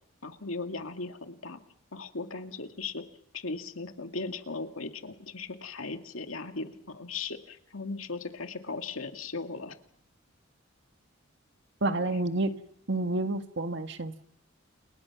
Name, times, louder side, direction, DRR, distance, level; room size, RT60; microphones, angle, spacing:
voice 1, 0.2-1.6 1.9-3.0 3.3-9.8, left 3 dB, 90° left, 6 dB, 2.2 m, -37 dB
voice 2, 11.8-12.5 12.9-14.1, right 2 dB, 60° right, 7 dB, 1.9 m, -29 dB
30.0 x 29.5 x 6.1 m, 0.71 s
head